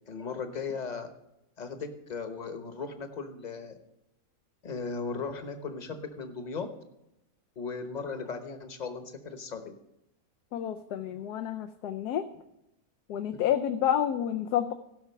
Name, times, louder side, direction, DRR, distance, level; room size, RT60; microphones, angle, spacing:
voice 1, 0.1-1.1 1.6-3.8 4.6-6.7 7.6-9.7 13.3-13.4, left 4 dB, 30° left, 7 dB, 1.0 m, -37 dB
voice 2, 10.5-12.3 13.1-14.7, left 10 dB, 85° left, 8 dB, 1.1 m, -29 dB
15.5 x 5.8 x 5.7 m, 0.87 s
omnidirectional pair, 1.7 m